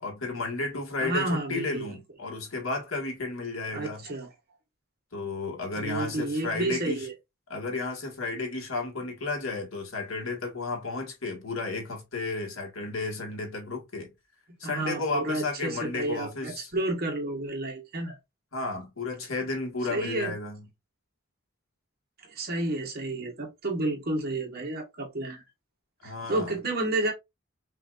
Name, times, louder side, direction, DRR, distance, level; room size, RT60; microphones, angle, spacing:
voice 1, 0.0-4.0 5.1-7.1 7.5-14.1 14.6-16.7 18.5-20.7 26.0-26.5, left 3 dB, 85° left, 1.8 m, -33 dB
voice 2, 1.0-2.0 3.7-4.3 5.7-7.1 14.5-18.2 19.9-20.4 22.3-25.4 26.0-27.1, right 2 dB, 50° right, 1.6 m, -31 dB
5.6 x 2.8 x 2.5 m
head